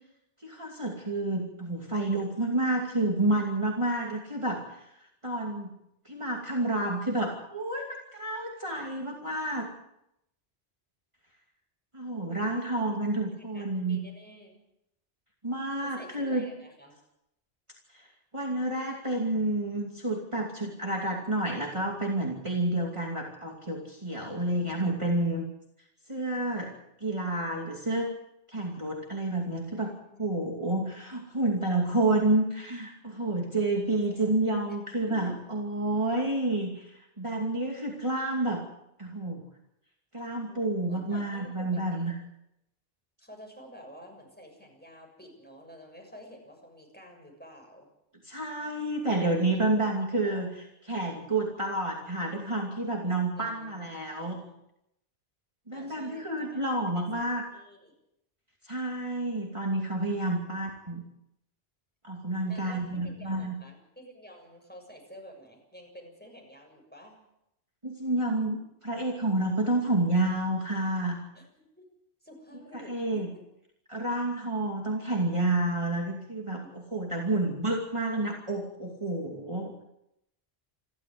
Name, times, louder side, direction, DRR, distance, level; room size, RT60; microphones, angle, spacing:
voice 1, 0.4-4.9 5.2-5.7 6.0-9.7 11.9-14.0 15.4-16.4 17.9-18.1 18.3-25.4 26.1-26.7 27.0-28.1 28.5-29.9 30.2-38.6 39.0-39.4 40.1-42.1 48.2-50.5 50.8-54.4 55.7-57.4 58.6-61.0 62.0-63.5 67.8-71.2 72.7-73.3 73.9-79.7, right 2 dB, 30° right, -1 dB, 2.8 m, -29 dB
voice 2, 12.2-13.0 13.5-14.5 15.8-17.0 29.8-30.2 34.1-34.3 35.0-35.4 40.5-42.1 43.2-47.9 49.5-49.9 50.2-50.4 53.3-54.6 55.7-56.6 56.9-57.9 62.5-67.1 71.3-71.5 71.8-71.9 72.2-73.4, equal, 10° left, 1 dB, 6.9 m, -50 dB
28.5 x 12.5 x 7.9 m, 0.82 s
omnidirectional pair, 1.0 m